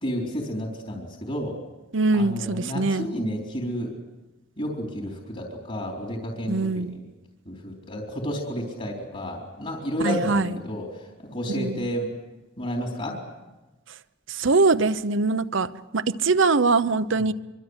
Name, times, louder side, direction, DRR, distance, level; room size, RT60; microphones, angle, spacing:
voice 1, 0.0-1.5 2.1-3.9 4.6-7.1 7.5-12.1 12.6-13.2 17.1-17.2, equal, 35° left, 0 dB, 4.0 m, -31 dB
voice 2, 1.9-3.1 6.5-6.9 10.0-10.4 11.6-11.8 14.4-17.3, right 3 dB, 70° right, 12 dB, 0.9 m, -22 dB
24.5 x 24.0 x 8.2 m, 1.1 s
head